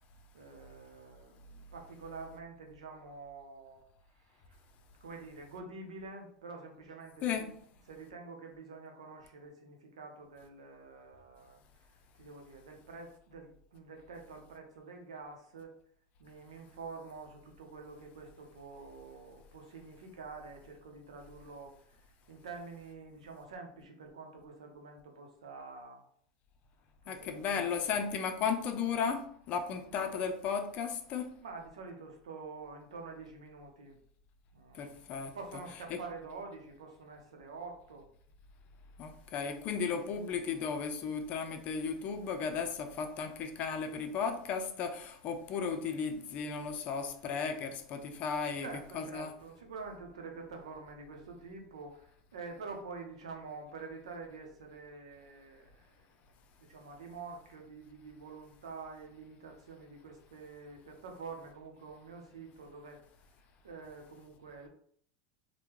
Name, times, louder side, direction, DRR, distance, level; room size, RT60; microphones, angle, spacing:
voice 1, 0.3-3.8 4.1-4.6 5.0-7.5 7.9-15.7 16.2-22.0 22.3-26.1 27.0-28.0 31.4-34.0 34.5-38.1 48.6-55.9 56.6-63.0 63.6-64.7, right 4 dB, 85° right, 0.7 m, -47 dB
voice 2, 27.1-31.3 34.7-35.4 35.9-36.0 39.0-48.7 48.9-49.3, left 6 dB, 50° left, 0.5 m, -35 dB
3.5 x 2.1 x 3.0 m
hypercardioid pair, 90°, 3 cm